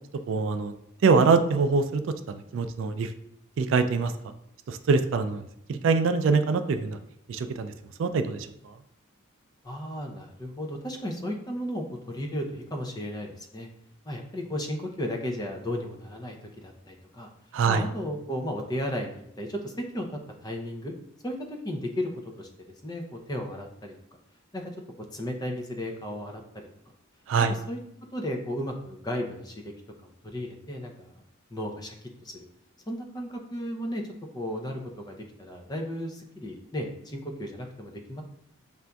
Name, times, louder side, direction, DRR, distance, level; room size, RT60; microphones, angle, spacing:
voice 1, 0.3-0.7 1.0-2.0 2.3-3.1 3.6-4.1 4.7-7.0 7.3-7.7 8.0-8.4 17.5-17.8 27.3-27.5, right 4 dB, 65° right, 9 dB, 0.3 m, -24 dB
voice 2, 9.6-13.7 14.0-17.3 17.7-20.9 21.2-22.1 22.4-22.5 22.8-23.9 24.5-24.6 25.1-26.4 27.5-27.8 28.1-29.7 30.0-31.2 31.5-31.9 32.2-32.4 32.9-34.0 34.3-38.2, equal, 20° left, 3 dB, 0.5 m, -34 dB
6.9 x 2.5 x 2.2 m, 0.75 s
head